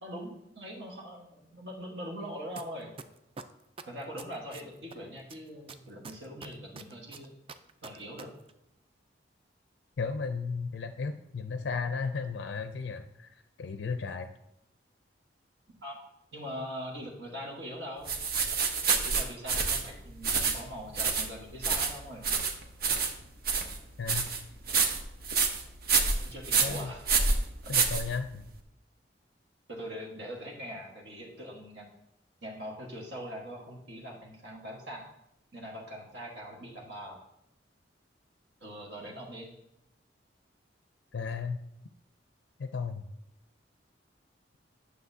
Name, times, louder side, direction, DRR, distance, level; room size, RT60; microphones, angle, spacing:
voice 1, 0.0-2.9 3.9-7.3 7.8-8.3 15.8-15.9 16.3-18.1 19.0-22.2 26.2-27.1 27.6-27.7 29.7-31.9 32.4-35.1 35.5-37.2 38.6-39.5, equal, 70° right, -2 dB, 1.4 m, -42 dB
sound 1, 2.6-2.7 3.0-4.9 5.3-8.2 8.5-8.6, right 5 dB, 30° right, 0.3 m, -44 dB
voice 2, 10.0-14.3 24.0-24.3 26.6-26.9 27.7-28.4 41.1-41.6 42.6-43.0, left 5 dB, 70° left, 8 dB, 0.4 m, -34 dB
sound 2, 18.1-28.5, right 5 dB, 55° right, 0.8 m, -28 dB
9.4 x 6.5 x 2.7 m, 0.83 s
head